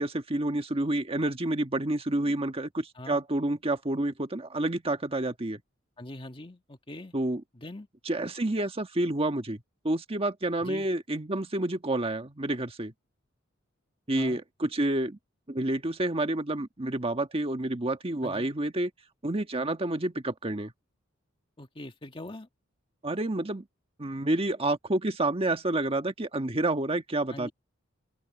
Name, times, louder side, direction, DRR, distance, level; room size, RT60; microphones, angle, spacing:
voice 1, 0.0-5.6 7.1-7.4 8.0-12.9 14.1-15.2 15.5-18.9 19.2-20.7 23.0-23.6 24.0-27.5, right 1 dB, 30° right, 1.4 m, -29 dB
voice 2, 6.0-7.1 7.5-7.9 10.6-10.9 14.1-14.4 18.2-18.5 21.6-22.5 27.3-27.5, left 1 dB, 25° left, 1.6 m, -42 dB
open air
head